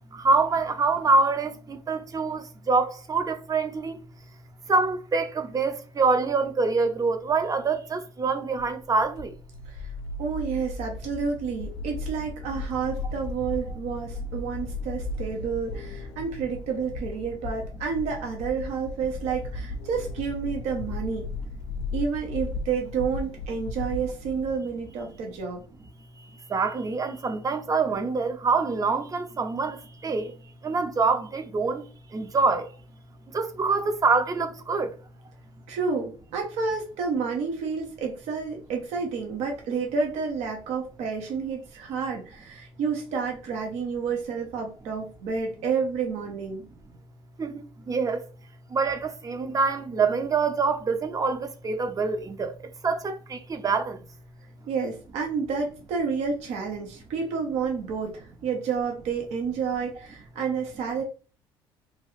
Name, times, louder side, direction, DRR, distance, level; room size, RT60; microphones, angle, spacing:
voice 1, 0.1-4.0 4.7-9.3 26.5-30.3 30.6-31.8 32.1-32.7 33.3-34.9 47.4-48.3 48.7-52.6 52.8-54.0, right 4 dB, 30° right, 0.6 m, -25 dB
sound 1, 8.6-24.6, left 2 dB, 80° left, 0.5 m, -36 dB
voice 2, 10.2-21.3 21.9-25.6 35.7-46.6 54.7-61.0, right 5 dB, 70° right, 0.8 m, -30 dB
3.0 x 2.3 x 3.0 m
supercardioid pair, 75°, 11 cm